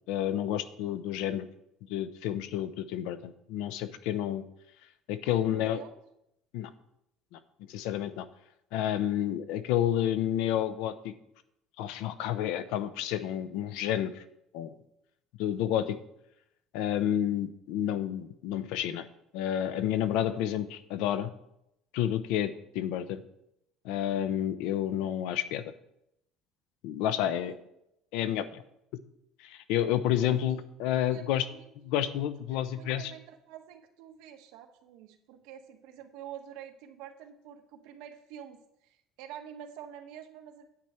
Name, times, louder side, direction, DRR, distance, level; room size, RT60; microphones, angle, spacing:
voice 1, 0.1-1.5 1.9-4.4 5.1-5.8 6.5-6.7 7.3-7.4 7.7-8.3 8.7-11.1 11.8-14.2 14.5-14.8 15.4-16.0 16.7-19.1 19.3-21.3 21.9-23.2 23.8-25.7 26.8-27.5 28.1-28.6 29.4-31.4 31.8-33.0, left 11 dB, 80° left, 12 dB, 0.7 m, -30 dB
voice 2, 5.2-6.0 27.1-27.6 30.2-30.3 31.1-32.2 32.5-40.7, right 9 dB, 85° right, 5 dB, 1.3 m, -48 dB
9.8 x 8.7 x 4.4 m, 0.80 s
cardioid pair, 180°, 0 cm